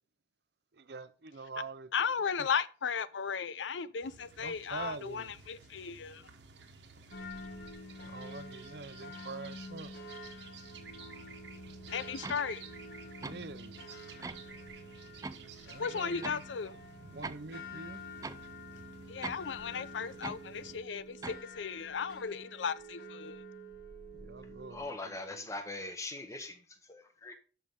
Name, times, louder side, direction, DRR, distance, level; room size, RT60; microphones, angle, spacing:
voice 1, 0.7-1.9 2.4-2.5 4.4-5.3 8.0-9.9 13.2-13.8 15.6-16.4 17.1-18.0 24.1-25.5, right 4 dB, 65° right, 0.7 m, -45 dB
voice 2, 1.9-6.2 11.9-12.6 15.8-16.7 19.1-23.4, left 6 dB, 90° left, 0.5 m, -35 dB
sound 1, 4.0-20.8, right 5 dB, 80° right, 1.3 m, -53 dB
sound 2, 7.1-25.0, left 2 dB, 60° left, 1.2 m, -48 dB
sound 3, 12.2-12.4 13.2-13.4 14.2-14.4 15.2-15.4 16.2-16.4 17.2-17.4 18.2-18.4 19.2-19.5 20.2-20.4 21.2-21.5, right 3 dB, 20° right, 0.3 m, -41 dB
voice 3, 24.7-26.6 26.9-27.3, left 2 dB, 15° left, 1.1 m, -41 dB
12.5 x 5.7 x 3.7 m
head